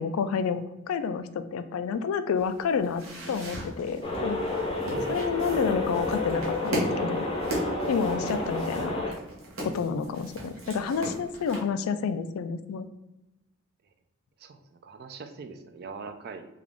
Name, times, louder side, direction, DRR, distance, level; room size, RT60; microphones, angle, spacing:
voice 1, 0.0-4.4 5.1-7.3 7.9-9.2 9.6-12.9, left 6 dB, 85° left, 12 dB, 0.3 m, -29 dB
sound 1, 2.4-11.6, right 1 dB, 80° right, 1.1 m, -38 dB
sound 2, 4.0-9.1, left 2 dB, 25° left, 0.5 m, -30 dB
voice 2, 4.8-5.3 14.4-16.5, right 4 dB, 50° right, 8 dB, 0.3 m, -41 dB
3.6 x 2.4 x 3.4 m, 1.0 s
head